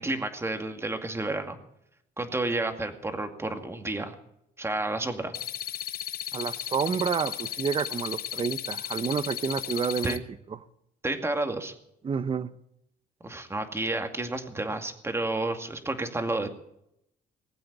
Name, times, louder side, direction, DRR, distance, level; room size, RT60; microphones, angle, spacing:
voice 1, 0.0-1.6 2.2-4.1 4.6-5.3 10.0-10.2 11.0-11.7 13.2-16.5, right 2 dB, 15° right, 2.2 m, -30 dB
sound 1, 5.3-10.2, left 12 dB, 55° left, 0.9 m, -35 dB
voice 2, 6.3-10.2 12.0-12.5, right 6 dB, 30° right, 0.8 m, -29 dB
20.5 x 8.5 x 8.3 m
cardioid pair, 120°, 18 cm